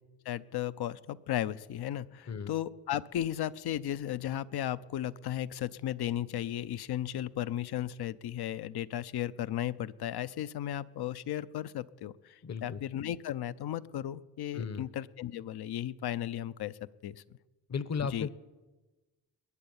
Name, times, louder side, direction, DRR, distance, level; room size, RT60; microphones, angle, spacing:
voice 1, 0.3-17.2 18.0-18.3, left 11 dB, 75° left, 15 dB, 0.7 m, -35 dB
voice 2, 12.4-12.8 14.5-14.9 17.7-18.3, left 6 dB, 40° left, 16 dB, 0.9 m, -35 dB
21.5 x 8.8 x 7.1 m, 1.2 s
supercardioid pair, 55°, 39 cm